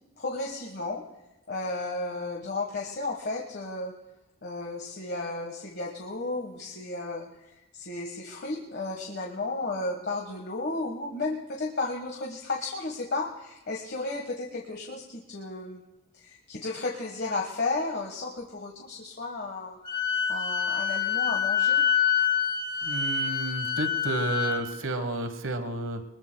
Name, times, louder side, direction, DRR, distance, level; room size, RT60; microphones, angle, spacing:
voice 1, 0.2-1.0 1.5-3.9 4.4-7.2 7.7-15.8 16.1-19.8 20.3-21.8, left 3 dB, 50° left, 0 dB, 1.4 m, -33 dB
Wind instrument woodwind instrument, 19.9-24.6, left 8 dB, 25° left, 1.4 m, -26 dB
voice 2, 22.8-26.0, right 2 dB, 75° right, 9 dB, 1.2 m, -31 dB
23.0 x 20.5 x 2.2 m, 0.95 s
head